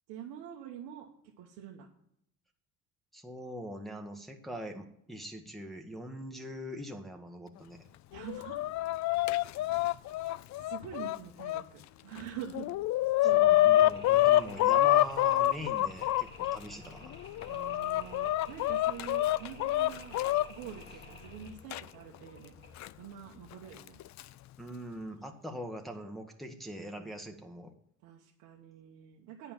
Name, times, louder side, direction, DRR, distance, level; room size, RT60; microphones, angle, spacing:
voice 1, 0.1-1.1 1.4-1.9 8.1-8.6 10.6-12.7 13.2-13.6 17.5-20.2 20.5-22.5 23.0-24.0 28.0-29.5, right 9 dB, 90° right, -1 dB, 1.2 m, -46 dB
voice 2, 3.1-7.8 13.3-17.2 24.6-27.7, equal, ahead, 2 dB, 1.4 m, -42 dB
Chicken rooster, 8.1-11.6 12.2-12.3 12.5-16.6 17.2-20.5 21.7-21.8 22.8-22.9 23.9-24.2, left 14 dB, 55° left, 0.4 m, -26 dB
Mechanisms, 13.2-23.0, left 2 dB, 30° left, 3.0 m, -51 dB
9.3 x 5.6 x 7.2 m, 0.73 s
supercardioid pair, 85°, 34 cm